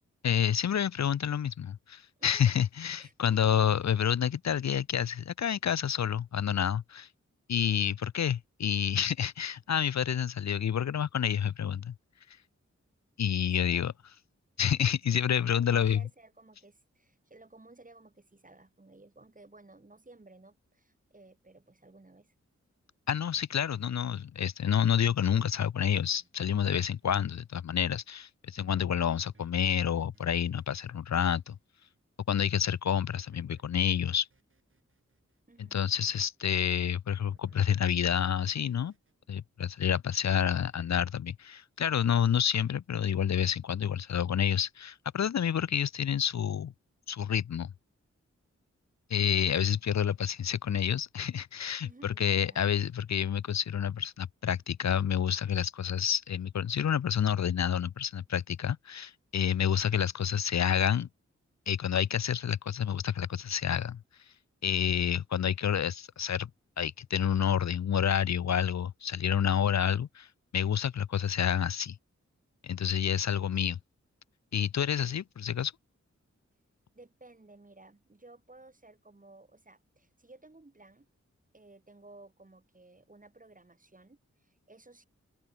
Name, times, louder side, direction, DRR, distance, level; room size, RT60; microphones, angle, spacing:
voice 1, 0.2-7.1 7.5-11.9 13.2-13.9 14.6-16.0 23.1-31.6 32.3-34.3 35.6-38.9 39.3-46.7 47.1-47.7 49.1-61.1 61.7-64.0 64.6-66.5 66.8-70.3 70.5-72.0 72.6-73.8 74.5-75.7, left 8 dB, 70° left, 0.7 m, -29 dB
voice 2, 3.0-3.4 13.5-13.8 15.1-22.3 35.5-35.8 51.8-52.6 76.9-81.1 81.5-85.1, right 2 dB, 30° right, 2.7 m, -56 dB
sound 1, 24.6-27.4 28.6-32.0 32.9-35.6 37.3-39.1, right 3 dB, 45° right, 4.9 m, -63 dB
open air
cardioid pair, 50°, 29 cm